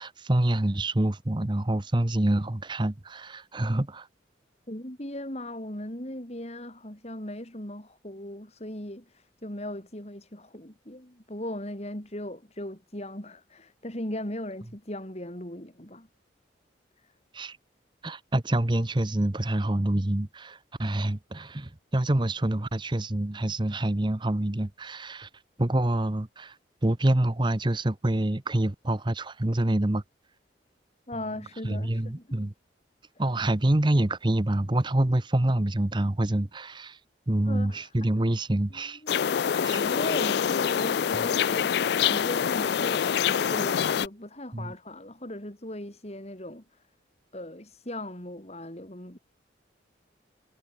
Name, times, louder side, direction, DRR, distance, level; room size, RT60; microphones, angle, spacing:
voice 1, 0.0-4.1 17.3-17.6 18.0-25.3 25.6-26.5 26.8-30.0 31.6-32.5 33.2-37.0 37.3-39.0 39.5-39.8 41.1-41.3 44.5-44.7, right 1 dB, 25° right, 0.9 m, -26 dB
voice 2, 4.7-16.1 31.1-32.4 37.5-38.1 38.7-39.2 39.5-46.8 47.3-49.2, left 1 dB, 35° left, 3.8 m, -38 dB
sound 1, 39.1-44.1, left 8 dB, 60° left, 0.3 m, -25 dB
head